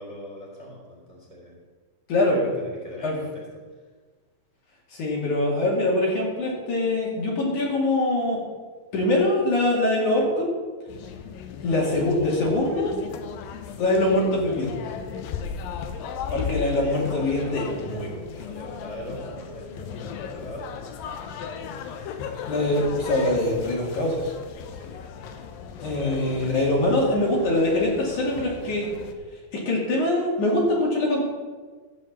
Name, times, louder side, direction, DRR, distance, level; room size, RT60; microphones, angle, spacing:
voice 1, 0.0-1.6 2.2-3.4 16.4-17.7 18.4-20.8 24.7-24.9 25.8-26.3, equal, 10° right, -3 dB, 3.1 m, -41 dB
voice 2, 2.1-2.5 3.0-3.2 4.9-8.4 8.9-10.5 11.6-13.0 13.8-14.9 16.3-18.4 22.5-24.3 25.8-28.9 29.7-31.3, left 1 dB, 60° left, -4 dB, 3.6 m, -23 dB
sound 1, 10.9-29.1, left 7 dB, 80° left, 2.6 m, -36 dB
13.5 x 4.9 x 8.5 m, 1.4 s
omnidirectional pair, 4.2 m